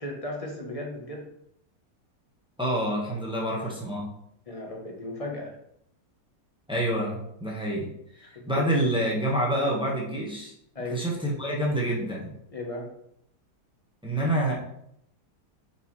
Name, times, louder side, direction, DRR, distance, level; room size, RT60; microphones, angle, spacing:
voice 1, 0.0-1.3 4.5-5.5 8.2-8.7 9.6-9.8 10.7-11.0 12.5-12.9, left 1 dB, 25° left, 0 dB, 1.0 m, -36 dB
voice 2, 2.6-4.1 6.7-7.9 8.2-10.5 10.9-12.3 14.0-14.5, right 1 dB, 5° right, -3 dB, 1.2 m, -27 dB
6.6 x 4.6 x 3.2 m, 0.74 s
omnidirectional pair, 1.7 m